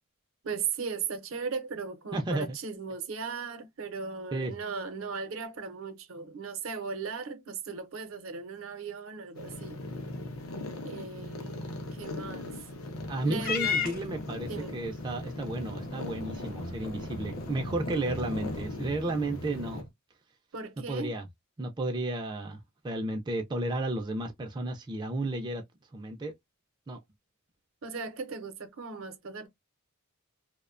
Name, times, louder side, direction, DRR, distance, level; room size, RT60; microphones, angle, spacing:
voice 1, 0.4-9.8 10.8-12.5 13.2-14.1 14.5-14.7 20.5-21.2 27.8-29.5, right 5 dB, 75° right, 0.6 m, -37 dB
voice 2, 2.1-2.6 4.3-4.5 13.1-19.8 20.9-21.3 21.6-22.6 22.8-25.6 25.9-26.3 26.9-27.0, right 2 dB, 20° right, 0.3 m, -33 dB
sound 1, 9.4-19.8, left 2 dB, 85° left, 0.6 m, -40 dB
Purr / Meow, 13.4-19.9, left 5 dB, 45° left, 0.5 m, -37 dB
2.6 x 2.1 x 2.4 m
head